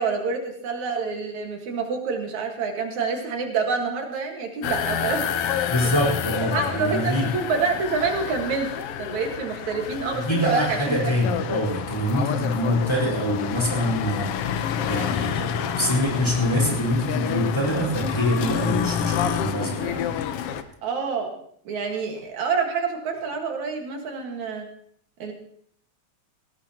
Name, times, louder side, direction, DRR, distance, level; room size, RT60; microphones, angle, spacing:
voice 1, 0.0-5.3 5.8-5.9 6.5-8.7 9.0-11.0 20.8-21.3 21.7-24.7 25.2-25.3, right 5 dB, 75° right, 2 dB, 3.1 m, -27 dB
sound 1, 4.6-20.6, left 9 dB, 65° left, 1.6 m, -29 dB
voice 2, 5.7-7.3 10.1-20.0 20.4-20.6, equal, 10° left, -2 dB, 4.4 m, -25 dB
18.5 x 18.0 x 2.9 m, 0.62 s
omnidirectional pair, 3.3 m